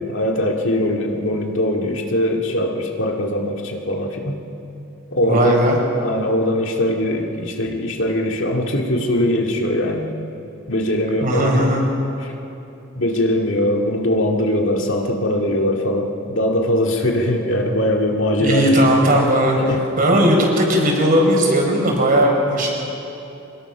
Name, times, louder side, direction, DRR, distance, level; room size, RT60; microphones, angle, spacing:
voice 1, 0.0-4.4 5.1-5.6 6.0-10.1 10.7-11.7 12.2-12.3 13.0-18.8 19.6-19.8, left 1 dB, 65° left, 1 dB, 2.1 m, -21 dB
voice 2, 5.2-5.8 11.2-11.8 18.4-19.6 20.0-22.7, equal, 45° right, 0 dB, 4.7 m, -17 dB
25.0 x 20.0 x 6.1 m, 2.9 s
head